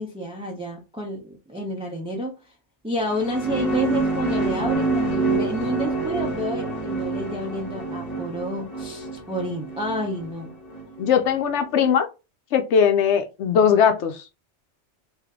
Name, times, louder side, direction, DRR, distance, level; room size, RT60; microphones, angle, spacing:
voice 1, 0.0-2.4 2.8-10.5, equal, 5° right, 0.5 m, -29 dB
sound 1, 3.0-11.6, right 3 dB, 35° left, 1.1 m, -27 dB
voice 2, 11.0-12.1 12.5-14.2, left 7 dB, 85° left, 0.9 m, -19 dB
3.3 x 2.5 x 3.6 m
omnidirectional pair, 1.2 m